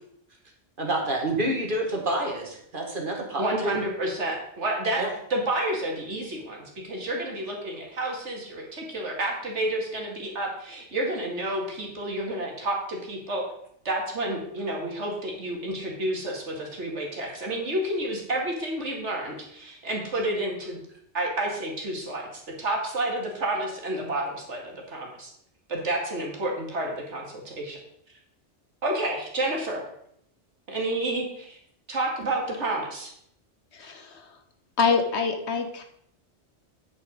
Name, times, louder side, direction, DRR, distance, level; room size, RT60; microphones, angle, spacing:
voice 1, 0.8-3.8 5.0-5.1, right 1 dB, 45° right, 0 dB, 2.1 m, -28 dB
voice 2, 3.4-5.0 5.3-13.4 13.8-20.8 21.1-25.3 25.7-27.8 28.8-29.8 30.7-31.6 31.9-33.1, right 1 dB, 80° right, 0 dB, 2.4 m, -30 dB
voice 3, 33.7-34.2 34.8-35.8, left 5 dB, 70° left, 5 dB, 1.4 m, -25 dB
9.1 x 5.8 x 5.3 m, 0.71 s
omnidirectional pair, 1.2 m